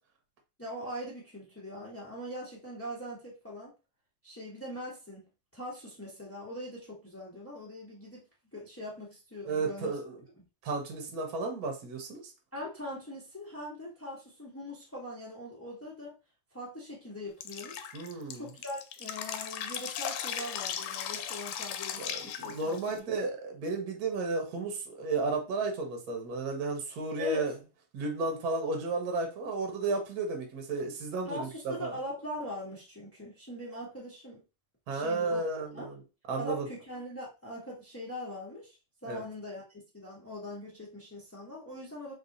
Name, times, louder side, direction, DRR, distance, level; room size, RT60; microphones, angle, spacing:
voice 1, 0.6-3.7 4.2-5.2 5.5-8.2 8.5-9.9 12.5-16.1 16.5-17.9 18.3-22.7 27.2-27.5 31.3-34.4 34.9-35.4 35.7-35.9 36.4-38.8 39.0-42.1, left 1 dB, 20° left, -5 dB, 0.3 m, -41 dB
voice 2, 9.4-10.2 10.6-12.3 17.9-18.4 22.0-27.5 27.9-31.9 34.9-35.9 36.3-36.7 39.1-39.2, right 3 dB, 55° right, 3 dB, 1.2 m, -33 dB
Drip, 17.4-23.0, left 9 dB, 90° left, 1.5 m, -37 dB
3.5 x 2.7 x 3.8 m, 0.31 s
omnidirectional pair, 2.4 m